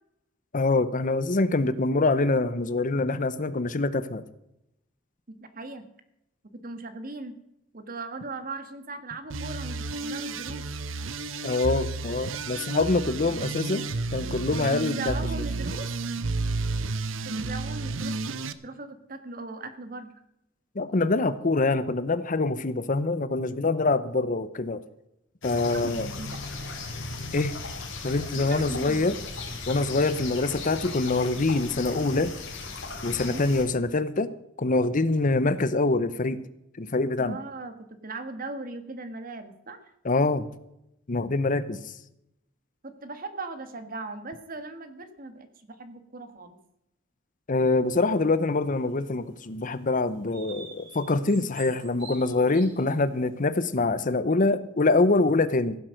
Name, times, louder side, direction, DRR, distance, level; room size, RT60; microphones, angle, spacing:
voice 1, 0.5-4.2 11.4-13.9 14.1-15.1 20.8-24.8 25.4-26.1 27.3-27.6 28.0-29.2 29.7-32.3 33.0-34.3 34.6-36.4 36.8-37.4 40.0-40.5 41.1-41.9 47.5-55.8, left 3 dB, 40° left, 14 dB, 0.7 m, -25 dB
voice 2, 5.3-5.8 6.6-7.4 7.7-10.6 13.4-13.5 14.3-15.9 17.2-18.1 18.6-20.1 25.7-26.4 28.3-29.2 33.3-33.5 37.2-37.8 38.0-39.8 42.8-46.6 51.3-51.5 52.8-52.9, right 3 dB, 45° right, 10 dB, 1.5 m, -39 dB
sound 1, 9.3-18.5, right 3 dB, 80° right, 0.8 m, -31 dB
sound 2, 25.4-33.6, left 3 dB, 70° left, 3.4 m, -37 dB
sound 3, 48.1-49.1 49.7-49.8 50.3-53.2, right 5 dB, 65° right, 3.5 m, -47 dB
16.0 x 7.6 x 6.5 m, 0.83 s
head